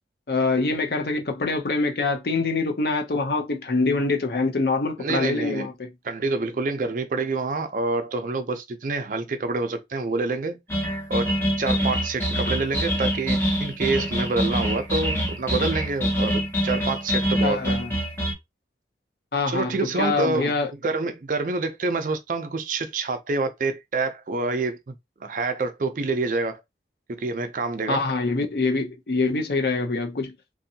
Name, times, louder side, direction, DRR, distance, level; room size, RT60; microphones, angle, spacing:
voice 1, 0.3-5.9 17.4-17.9 19.3-19.7 20.0-20.7 27.9-30.3, left 3 dB, 60° left, 0.5 m, -24 dB
voice 2, 5.0-5.7 6.0-10.6 11.1-17.8 19.5-24.9 25.2-26.6 27.1-28.0, right 3 dB, 45° right, 0.4 m, -27 dB
sound 1, 10.7-18.3, equal, 15° left, 0.7 m, -25 dB
2.6 x 2.2 x 2.7 m
head